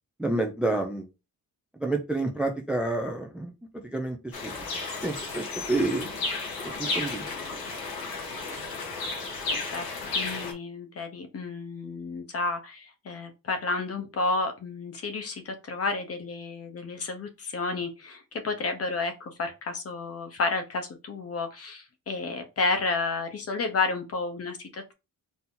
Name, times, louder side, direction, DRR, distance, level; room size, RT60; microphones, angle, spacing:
voice 1, 0.2-1.1 1.8-4.5 5.0-6.1 6.6-7.3, right 2 dB, 5° right, 4 dB, 0.4 m, -29 dB
sound 1, 4.3-10.5, left 3 dB, 85° left, 1.5 m, -33 dB
voice 2, 10.1-24.9, left 3 dB, 40° left, 6 dB, 0.9 m, -31 dB
4.1 x 2.8 x 3.7 m, 0.27 s
wide cardioid pair, 175°, 35 cm